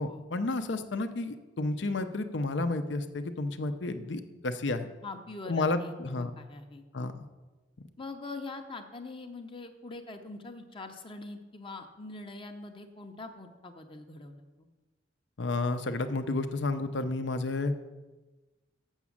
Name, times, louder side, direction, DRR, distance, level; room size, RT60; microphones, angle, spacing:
voice 1, 0.0-4.9 5.5-6.3 6.9-7.3 15.4-17.7, left 2 dB, 70° left, 9 dB, 0.7 m, -31 dB
voice 2, 5.0-7.1 8.0-14.7, left 3 dB, 30° left, 5 dB, 0.7 m, -43 dB
7.2 x 6.1 x 7.2 m, 1.2 s
head